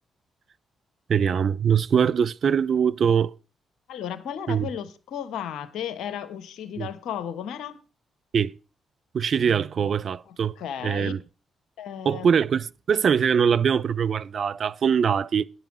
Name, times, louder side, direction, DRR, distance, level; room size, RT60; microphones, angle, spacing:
voice 1, 1.1-3.3 4.5-4.7 6.8-6.9 8.3-8.5 9.1-10.6 10.8-11.2 12.0-15.4, right 7 dB, 55° right, 0.5 m, -22 dB
voice 2, 3.9-7.8 10.3-11.2 11.8-12.3, left 9 dB, 70° left, 1.1 m, -34 dB
10.0 x 5.6 x 7.4 m
hypercardioid pair, 40°, 0 cm